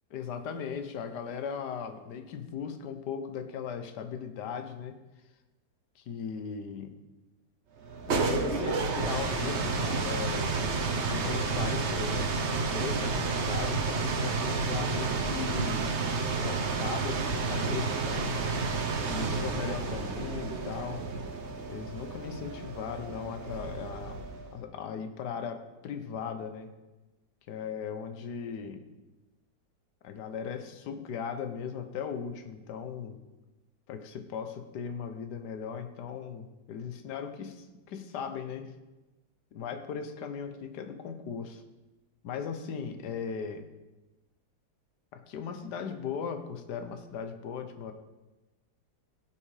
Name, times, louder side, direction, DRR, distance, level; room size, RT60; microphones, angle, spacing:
voice 1, 0.1-5.0 6.0-7.0 8.0-10.6 11.1-15.9 16.4-18.4 19.0-21.1 21.7-26.7 27.5-28.8 30.0-33.2 33.9-38.7 39.5-41.6 42.2-43.7 45.1-47.9, left 7 dB, 70° left, 8 dB, 1.5 m, -38 dB
sound 1, 7.8-24.5, right 4 dB, 45° right, 1.1 m, -31 dB
16.5 x 5.8 x 4.9 m, 1.1 s
omnidirectional pair, 1.9 m